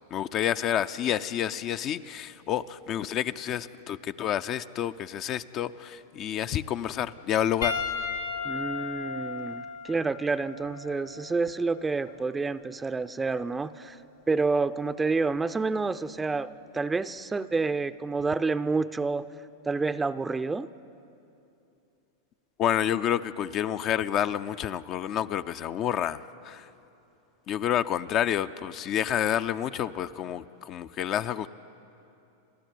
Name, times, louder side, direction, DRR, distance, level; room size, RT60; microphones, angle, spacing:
voice 1, 0.1-7.7 22.6-26.7 27.5-31.5, left 10 dB, 40° left, 11 dB, 0.6 m, -29 dB
Piano, 7.6-12.3 13.2-13.4 15.3-15.4, left 5 dB, 90° left, 4.1 m, -35 dB
voice 2, 8.4-14.0 14.3-19.2 19.7-20.7, right 4 dB, 15° right, 13 dB, 0.5 m, -29 dB
29.0 x 12.5 x 9.3 m, 2.8 s
hypercardioid pair, 105°, 0 cm